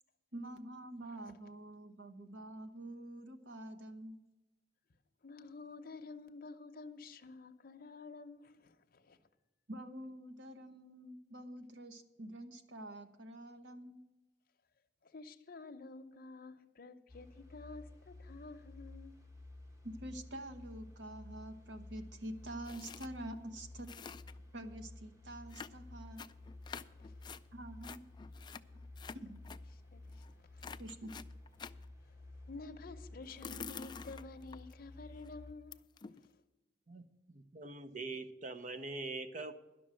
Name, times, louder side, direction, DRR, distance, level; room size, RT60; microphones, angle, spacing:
voice 1, 0.3-4.2 9.7-14.0 19.8-23.9 24.5-26.2 27.5-28.0 29.1-29.4 30.8-31.1, right 1 dB, 80° right, 1.1 m, -47 dB
voice 2, 5.2-9.2 15.0-19.2 27.0-27.3 29.9-30.8 32.0-32.2 32.5-36.4, left 3 dB, 55° left, 0.8 m, -51 dB
sound 1, 17.1-35.5, left 2 dB, 20° right, 1.1 m, -53 dB
sound 2, 22.6-23.1 23.4-23.5 23.7-24.5 25.5-27.4 27.8-29.6 30.1-30.3 30.6-31.8 33.2-34.7 35.2-35.3 35.7-36.3, left 6 dB, 25° left, 0.3 m, -48 dB
voice 3, 36.9-39.5, right 3 dB, 45° right, 0.8 m, -43 dB
11.0 x 6.3 x 8.9 m
head